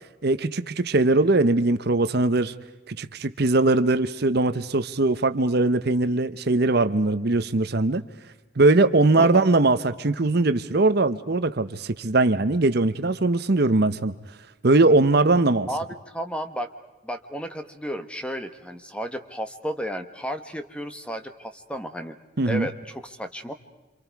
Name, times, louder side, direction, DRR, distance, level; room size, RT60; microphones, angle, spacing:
voice 1, 0.2-2.5 2.9-8.0 8.6-14.1 14.6-15.7 22.4-22.7, right 2 dB, 50° right, 11 dB, 0.8 m, -21 dB
voice 2, 15.7-16.7 17.0-22.2 22.4-23.5, equal, 5° left, 8 dB, 1.2 m, -33 dB
27.5 x 27.5 x 4.7 m, 1.1 s
head